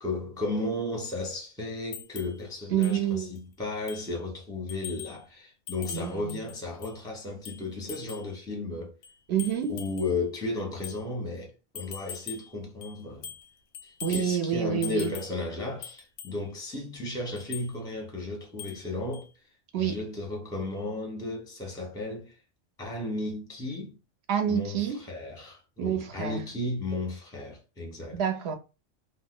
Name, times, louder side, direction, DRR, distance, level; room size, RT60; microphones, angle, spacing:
voice 1, 0.0-8.9 9.7-13.3 14.1-19.3 19.8-22.4 22.8-24.0 24.5-28.2, left 2 dB, 5° left, 0.7 m, -34 dB
sound 1, 1.9-2.4 2.8-3.0 3.4-3.5 3.9-4.1 4.7-5.2 5.7-7.0 7.4-8.3 9.0-10.2 10.8-11.0 11.7-12.5 12.8-13.5 13.7-14.4 14.8-15.4 15.8-16.4 17.4-17.7 18.6-18.9 19.1-19.3, left 8 dB, 85° left, 1.0 m, -42 dB
voice 2, 2.7-3.3 5.9-6.4 9.3-9.8 14.0-15.1 19.7-20.1 24.3-25.0 25.8-26.4 28.1-28.6, right 8 dB, 65° right, 0.9 m, -28 dB
2.9 x 2.1 x 3.6 m
omnidirectional pair, 1.3 m